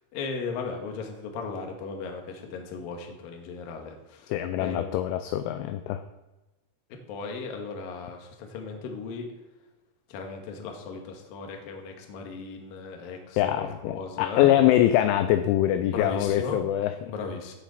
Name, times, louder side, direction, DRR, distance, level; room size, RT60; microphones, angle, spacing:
voice 1, 0.1-4.3 4.6-5.0 7.1-9.3 10.1-14.5 15.9-16.6 17.1-17.5, left 4 dB, 65° left, 3 dB, 2.4 m, -36 dB
voice 2, 4.3-6.0 13.4-17.1, left 12 dB, 85° left, 10 dB, 2.8 m, -24 dB
16.0 x 6.1 x 4.2 m, 1.1 s
omnidirectional pair, 5.9 m